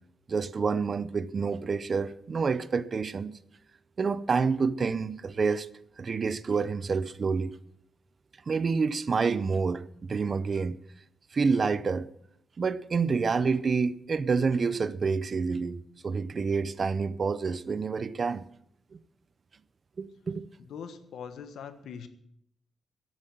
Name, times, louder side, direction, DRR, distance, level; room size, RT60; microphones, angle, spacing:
voice 1, 0.3-3.3 4.0-5.7 6.0-7.5 8.5-10.8 11.3-12.1 12.6-15.8 16.0-18.4 20.0-20.5, right 5 dB, 35° right, 0.5 m, -28 dB
voice 2, 20.6-22.1, left 7 dB, 90° left, 1.3 m, -42 dB
12.0 x 9.0 x 7.4 m
wide cardioid pair, 175°, 0 cm